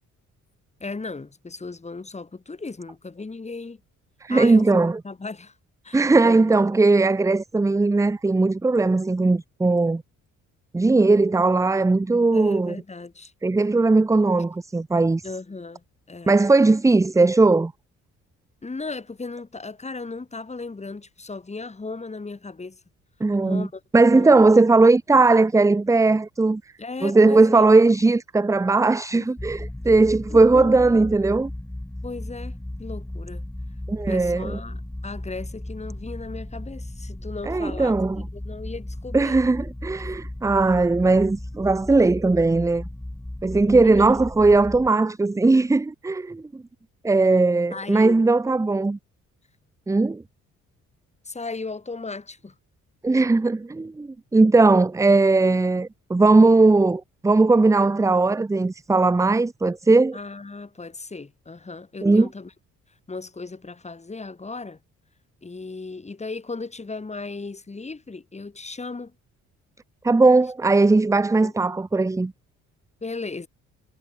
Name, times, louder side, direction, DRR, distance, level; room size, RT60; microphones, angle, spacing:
voice 1, 0.8-3.8 4.3-5.5 5.8-6.5 12.3-13.3 15.2-16.4 18.6-22.8 23.4-24.4 26.8-27.7 29.2-29.3 30.3-30.8 32.0-33.4 34.1-39.4 43.7-44.1 47.7-48.2 51.3-52.5 60.1-62.5 63.1-64.8 65.4-69.1 71.4-71.5 73.0-73.5, left 3 dB, 20° left, 3.8 m, -36 dB
voice 2, 4.2-5.0 5.9-10.0 10.7-12.8 13.4-15.2 16.3-17.7 23.2-23.7 23.9-26.6 27.0-31.5 33.9-34.6 37.5-38.3 39.1-42.8 43.4-46.6 47.0-49.0 49.9-50.2 53.0-60.2 62.0-62.3 70.0-72.3, right 3 dB, 10° right, 0.5 m, -18 dB
sound 1, 29.4-44.9, left 1 dB, 5° left, 3.7 m, -35 dB
cardioid pair, 90°, 30 cm